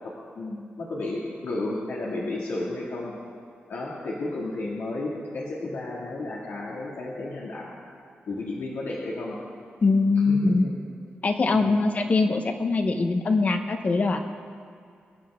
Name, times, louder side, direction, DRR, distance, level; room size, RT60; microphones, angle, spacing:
voice 1, 0.0-3.1 3.7-7.7 8.3-9.4 10.2-10.7 11.5-11.9, left 2 dB, 85° left, -5 dB, 2.1 m, -33 dB
voice 2, 9.8-10.7 11.2-14.2, left 3 dB, 40° left, 6 dB, 1.0 m, -22 dB
23.5 x 10.0 x 3.7 m, 2.3 s
wide cardioid pair, 175°, 4 cm